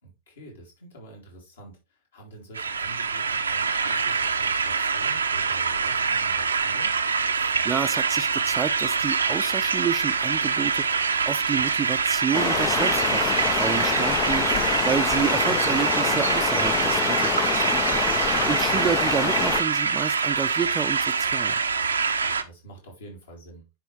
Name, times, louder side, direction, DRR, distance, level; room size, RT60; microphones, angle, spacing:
voice 1, 0.0-7.0 22.3-23.8, right 1 dB, 70° left, 3.8 m, -47 dB
sound 1, 2.5-22.4, right 5 dB, 75° right, 0.7 m, -24 dB
voice 2, 7.4-21.6, right 7 dB, 20° right, 0.5 m, -30 dB
Stream, 12.3-19.6, left 10 dB, 30° left, 0.4 m, -27 dB
10.0 x 4.5 x 3.4 m
figure-of-eight pair, 90°, 0 cm